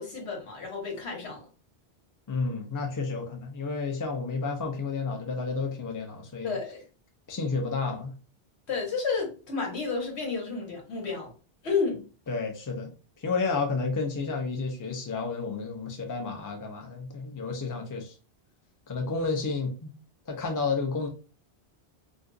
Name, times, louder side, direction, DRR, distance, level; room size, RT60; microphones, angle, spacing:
voice 1, 0.0-1.4 6.4-6.8 8.7-11.3 11.6-12.1, left 4 dB, 90° left, 1.4 m, -31 dB
voice 2, 2.3-6.5 7.3-8.1 12.3-12.9 13.2-18.1 18.9-19.9 20.3-21.1, left 4 dB, 25° left, 0.5 m, -31 dB
2.5 x 2.4 x 3.9 m
omnidirectional pair, 1.1 m